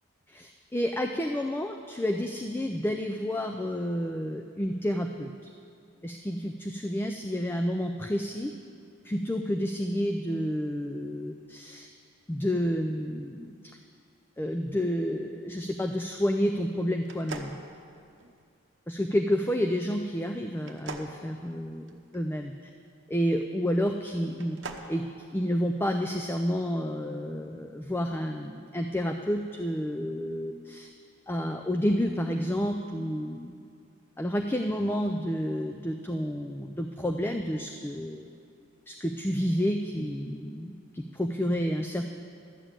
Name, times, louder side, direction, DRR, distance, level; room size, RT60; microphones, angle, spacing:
voice 1, 0.3-5.5 6.0-8.5 9.0-11.9 12.3-13.6 14.4-17.6 18.9-22.5 23.1-24.6 24.9-25.0 25.3-30.9 31.3-33.5 34.2-38.3 38.9-42.1, equal, 10° left, 4 dB, 0.4 m, -30 dB
sound 1, 17.0-18.4 20.6-22.2 24.3-24.9, right 4 dB, 60° right, 0.9 m, -42 dB
12.5 x 7.0 x 8.8 m, 2.3 s
head